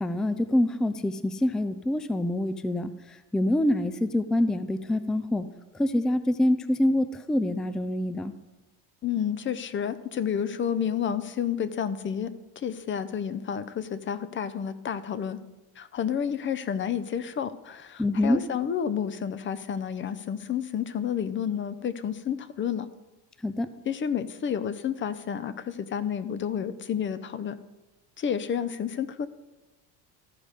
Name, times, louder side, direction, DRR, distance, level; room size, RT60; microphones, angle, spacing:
voice 1, 0.0-5.5 5.7-8.3 11.1-11.2 18.0-18.4 23.4-23.7, left 1 dB, ahead, 12 dB, 0.3 m, -26 dB
voice 2, 9.0-15.4 15.8-22.9 23.9-27.6 28.2-29.3, left 8 dB, 30° left, 14 dB, 0.6 m, -30 dB
14.0 x 5.0 x 5.2 m, 1.1 s
cardioid pair, 110°, 40 cm